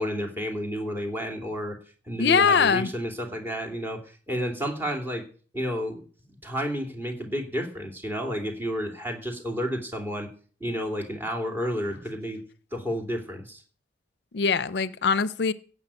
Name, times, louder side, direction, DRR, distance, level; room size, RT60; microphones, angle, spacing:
voice 1, 0.0-1.7 2.1-4.0 4.3-5.2 5.5-10.3 10.6-12.4 12.7-13.6, equal, 15° right, 3 dB, 2.9 m, -31 dB
voice 2, 2.2-2.9 14.3-15.5, left 6 dB, 65° left, 16 dB, 0.6 m, -22 dB
16.0 x 5.7 x 8.9 m, 0.42 s
head